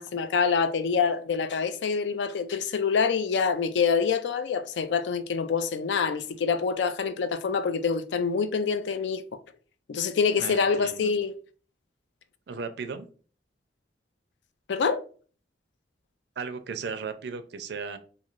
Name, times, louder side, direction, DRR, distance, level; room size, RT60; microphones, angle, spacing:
voice 1, 0.0-9.2 9.9-11.3 14.7-15.0, left 5 dB, 80° left, 0.4 m, -26 dB
voice 2, 10.4-11.1 12.5-13.1 16.4-18.0, right 5 dB, 70° right, 0.4 m, -36 dB
3.0 x 2.6 x 2.4 m
head